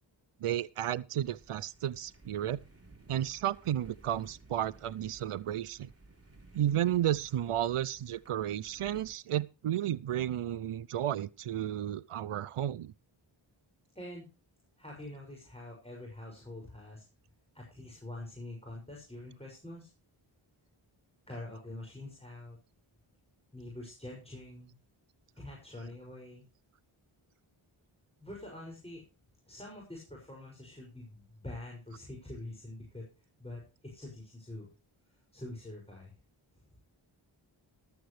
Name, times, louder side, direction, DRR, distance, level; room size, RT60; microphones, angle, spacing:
voice 1, 0.4-2.6 3.1-5.9 6.5-12.9, right 11 dB, 85° right, 0.6 m, -32 dB
sound 1, 1.2-9.1, right 3 dB, 30° right, 3.6 m, -58 dB
voice 2, 13.9-14.3 14.8-17.0 17.5-19.9 21.3-22.6 23.5-24.7 25.4-26.4 28.2-29.0 29.5-33.1 33.4-34.7 35.3-36.1, left 1 dB, 10° left, 6.1 m, -45 dB
14.0 x 13.0 x 3.2 m
wide cardioid pair, 55°, 50 cm